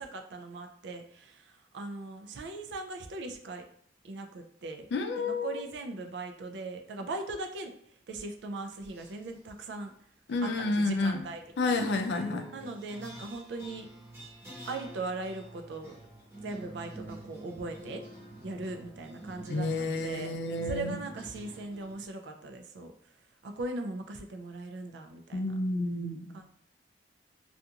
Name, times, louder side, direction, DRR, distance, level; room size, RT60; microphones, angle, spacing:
voice 1, 0.0-3.6 4.0-4.9 5.2-7.7 8.1-9.9 10.4-11.8 12.5-13.9 14.7-16.0 16.4-18.0 18.4-20.3 20.6-22.9 23.4-25.5 26.3-26.5, right 2 dB, 75° right, 5 dB, 0.4 m, -39 dB
voice 2, 4.9-5.6 10.3-11.2 11.6-12.5 19.5-21.0 25.3-26.3, left 2 dB, 70° left, 5 dB, 0.4 m, -30 dB
sound 1, 8.8-9.3 10.3-21.9, right 1 dB, 15° right, 0.8 m, -48 dB
2.4 x 2.3 x 2.8 m, 0.66 s
head